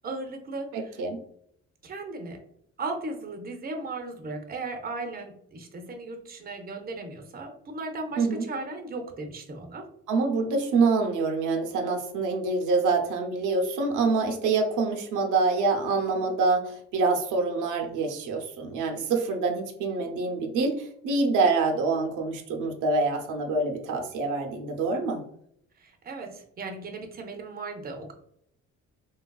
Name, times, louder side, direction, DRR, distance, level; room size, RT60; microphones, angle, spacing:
voice 1, 0.0-1.0 1.8-2.4 2.8-9.9 25.8-28.1, right 3 dB, 30° right, 4 dB, 0.6 m, -36 dB
voice 2, 0.7-1.2 8.2-8.4 10.1-25.2, right 3 dB, 85° right, 3 dB, 0.6 m, -26 dB
3.2 x 2.3 x 2.2 m, 0.68 s
cardioid pair, 90°, 30 cm